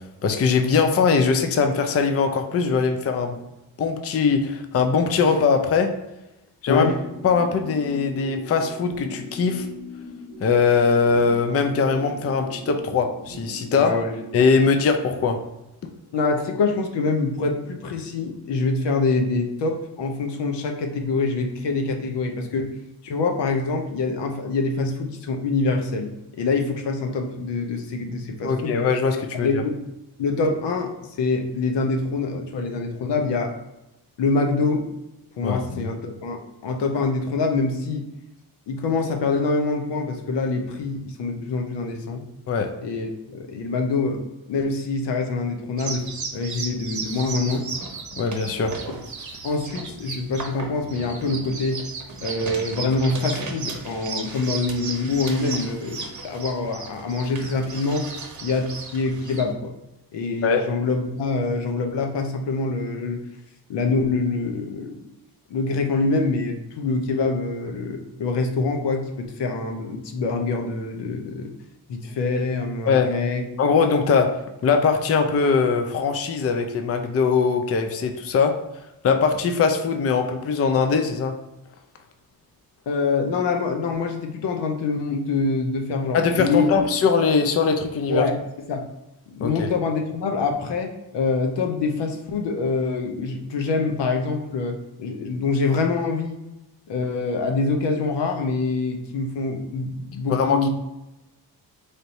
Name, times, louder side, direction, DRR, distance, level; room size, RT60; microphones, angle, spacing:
voice 1, 0.2-3.4 3.8-5.9 6.6-6.9 7.2-9.7 10.4-14.0 14.3-15.4 28.4-29.6 35.4-35.8 42.5-42.7 48.1-48.7 60.4-60.6 72.9-73.1 73.6-74.3 74.6-78.6 79.0-81.3 86.1-88.2 89.4-89.7 100.3-100.7, left 5 dB, 35° left, 6 dB, 0.5 m, -21 dB
voice 2, 6.7-7.0 13.8-14.1 16.1-22.7 23.0-28.8 29.3-29.8 30.2-33.5 34.2-34.8 35.4-38.1 38.7-42.2 42.8-44.2 44.5-46.0 46.3-47.7 49.4-51.8 52.2-58.1 58.4-59.7 60.1-63.2 63.7-65.0 65.5-71.5 71.9-73.4 82.9-86.8 88.1-88.4 88.7-88.9 89.3-96.4 96.9-100.7, left 3 dB, 75° left, 4 dB, 0.7 m, -25 dB
sound 1, 6.8-15.5, equal, 75° right, 0.8 m, -40 dB
sound 2, 45.8-59.5, right 4 dB, 45° right, 0.8 m, -35 dB
3.4 x 2.6 x 4.0 m, 0.95 s
cardioid pair, 75°, 42 cm